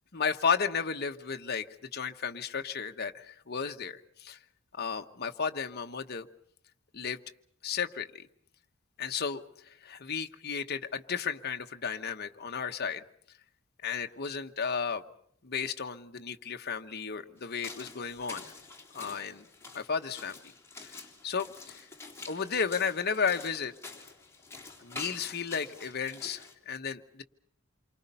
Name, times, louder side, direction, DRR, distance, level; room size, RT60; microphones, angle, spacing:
voice 1, 0.1-4.4 4.7-6.3 6.9-7.2 7.6-8.2 9.0-13.0 13.8-15.0 15.4-18.4 18.9-19.5 19.7-20.4 20.8-21.8 22.3-23.7 24.8-27.2, left 6 dB, 50° left, 6 dB, 1.1 m, -33 dB
sound 1, 17.4-26.5, left 3 dB, 15° left, 3.6 m, -47 dB
28.5 x 24.5 x 5.6 m, 0.64 s
head